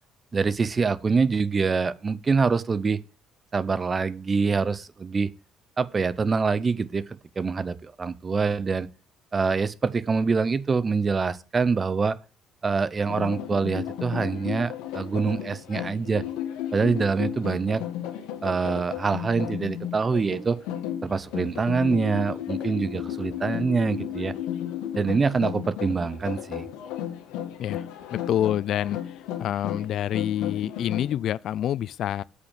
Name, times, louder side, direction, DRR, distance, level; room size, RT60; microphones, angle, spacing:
voice 1, 0.3-3.0 3.5-5.3 5.8-8.9 9.3-12.2 12.6-16.2 16.7-17.8 18.4-20.6 21.0-24.3 24.9-26.7, right 4 dB, 30° right, 0.7 m, -25 dB
sound 1, 13.1-31.1, left 10 dB, 85° left, 1.5 m, -34 dB
voice 2, 27.6-32.2, left 11 dB, 65° left, 0.4 m, -27 dB
8.1 x 5.3 x 7.2 m
supercardioid pair, 85°, 0 cm